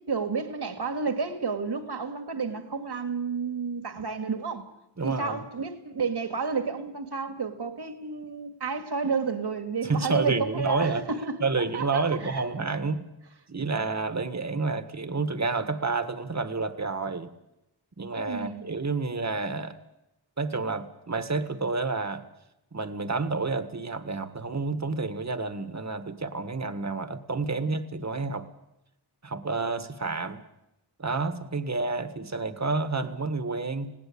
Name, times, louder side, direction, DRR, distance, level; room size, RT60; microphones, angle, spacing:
voice 1, 0.1-4.7 5.0-11.4 11.7-12.4 18.2-18.7, right 5 dB, 65° right, 2.3 m, -31 dB
voice 2, 5.0-5.4 9.8-11.1 11.4-13.0 13.5-17.3 18.0-19.8 20.4-22.3 22.7-28.5 29.2-30.4 31.0-33.9, right 3 dB, 40° right, 1.7 m, -29 dB
20.0 x 17.5 x 8.6 m
wide cardioid pair, 65°, 42 cm